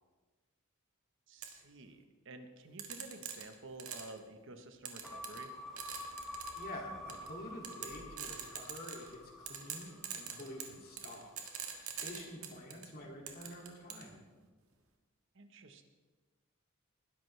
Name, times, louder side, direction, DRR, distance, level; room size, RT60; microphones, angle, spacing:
voice 1, 1.3-5.5 15.3-15.8, right 2 dB, 60° right, 7 dB, 1.2 m, -51 dB
sound 1, 1.4-1.5 2.8-4.2 4.9-5.5 5.8-6.6 7.1-7.3 7.6-9.1 9.5-12.9 13.3-14.1, right 8 dB, 90° right, 1.8 m, -43 dB
sound 2, 5.0-11.4, left 1 dB, ahead, 2.3 m, -48 dB
voice 2, 6.6-11.5 12.0-14.2, left 1 dB, 45° left, -1 dB, 2.6 m, -48 dB
20.0 x 11.0 x 3.4 m, 1.3 s
head